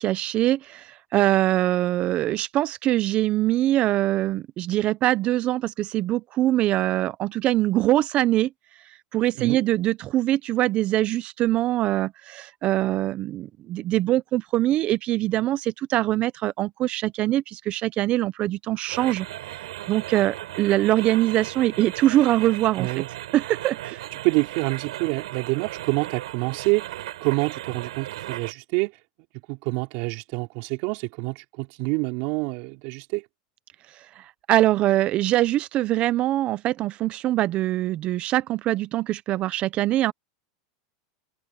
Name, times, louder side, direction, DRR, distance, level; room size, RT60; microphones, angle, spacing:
voice 1, 0.0-8.5 9.1-19.3 19.9-22.9 23.3-24.0 34.5-40.1, right 14 dB, 40° right, 1.0 m, -23 dB
sound 1, 18.9-28.5, right 14 dB, 80° right, 7.8 m, -36 dB
voice 2, 22.8-23.1 24.2-28.9 29.5-33.2, right 27 dB, 55° right, 4.6 m, -27 dB
supercardioid pair, 125°, 3 cm